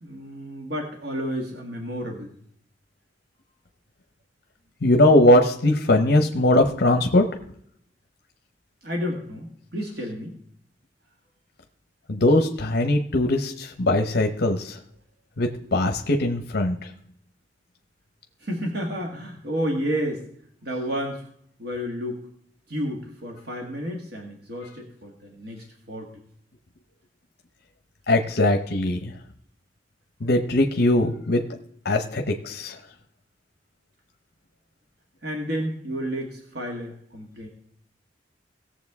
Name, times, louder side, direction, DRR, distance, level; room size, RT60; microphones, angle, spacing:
voice 1, 0.0-2.3 8.8-10.4 18.4-20.2 20.6-21.3 21.6-22.2 22.7-26.1 35.2-37.5, equal, 60° right, 1 dB, 1.6 m, -31 dB
voice 2, 4.8-7.2 12.1-14.8 15.4-16.9 28.1-29.1 30.2-31.4 31.8-32.8, left 1 dB, 60° left, 4 dB, 0.9 m, -20 dB
18.0 x 7.3 x 3.6 m, 0.66 s
head